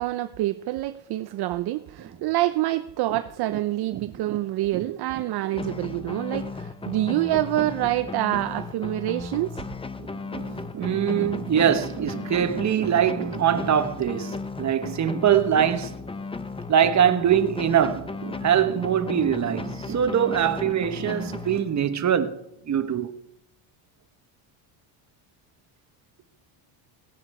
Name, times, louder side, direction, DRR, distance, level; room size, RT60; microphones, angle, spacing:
voice 1, 0.0-9.6, right 15 dB, 55° right, 0.6 m, -26 dB
sound 1, 5.6-22.1, left 3 dB, 10° left, 0.7 m, -35 dB
voice 2, 10.0-16.1 16.7-22.4 22.7-23.1, right 9 dB, 35° right, 1.2 m, -23 dB
18.0 x 9.7 x 4.8 m
cardioid pair, 115°, 48 cm